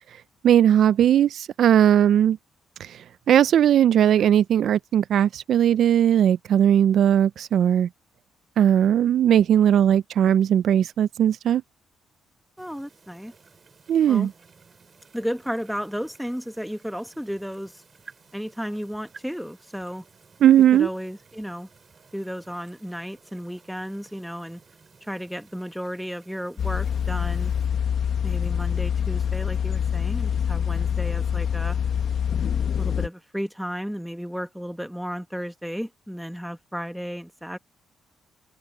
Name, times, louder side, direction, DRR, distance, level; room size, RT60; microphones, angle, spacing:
voice 1, 0.4-2.4 2.8-7.9 8.6-11.6 13.9-14.3 20.4-20.9, right 10 dB, 65° right, 0.4 m, -18 dB
voice 2, 12.6-13.3 14.1-14.3 15.1-17.8 18.3-20.0 20.7-21.7 22.1-24.6 25.0-27.5 28.2-31.8 32.8-37.6, equal, ahead, 1.7 m, -33 dB
sound 1, 12.6-27.7, right 5 dB, 40° right, 6.7 m, -55 dB
sound 2, 26.6-33.1, left 8 dB, 60° left, 1.1 m, -25 dB
cardioid pair, 90°, 0 cm